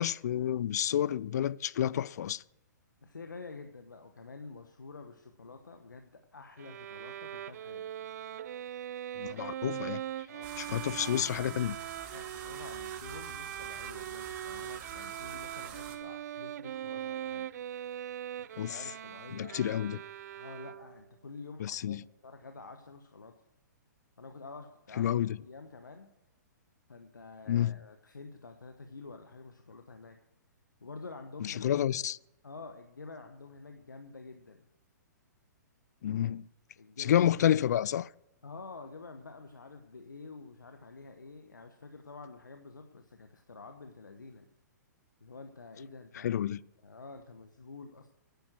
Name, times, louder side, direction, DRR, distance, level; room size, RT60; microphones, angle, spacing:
voice 1, 0.0-2.4 9.2-10.0 10.6-11.8 18.6-18.8 19.4-20.0 21.6-22.0 25.0-25.4 27.5-27.8 31.4-32.2 36.0-36.5 37.0-38.1 46.2-46.6, left 10 dB, 60° left, 0.4 m, -29 dB
voice 2, 3.0-7.8 10.3-11.2 12.0-17.5 18.4-19.8 20.3-23.3 24.2-26.1 26.9-30.2 30.8-31.8 32.4-34.7 36.8-37.3 38.4-44.5 45.2-46.4 46.8-48.1, left 3 dB, 90° left, 1.1 m, -48 dB
Bowed string instrument, 6.6-21.1, right 11 dB, 60° right, 0.3 m, -41 dB
sound 1, 10.4-16.0, right 8 dB, 40° right, 2.3 m, -46 dB
10.5 x 9.2 x 7.7 m
hypercardioid pair, 125°, 10 cm